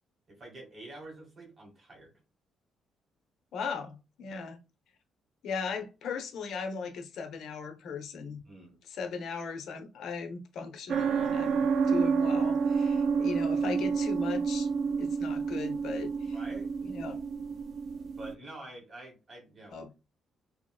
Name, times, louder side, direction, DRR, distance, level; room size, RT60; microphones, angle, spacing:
voice 1, 0.3-2.1 4.3-4.5 8.5-8.8 16.3-16.7 18.2-19.8, right 2 dB, 35° right, 1.8 m, -47 dB
voice 2, 3.5-4.6 5.4-8.4 8.9-14.7 15.0-16.4 16.9-17.2 19.7-19.9, left 5 dB, 70° left, 0.7 m, -38 dB
sound 1, 10.9-18.3, right 5 dB, 60° right, 0.4 m, -29 dB
2.9 x 2.8 x 2.3 m
cardioid pair, 90°, 0 cm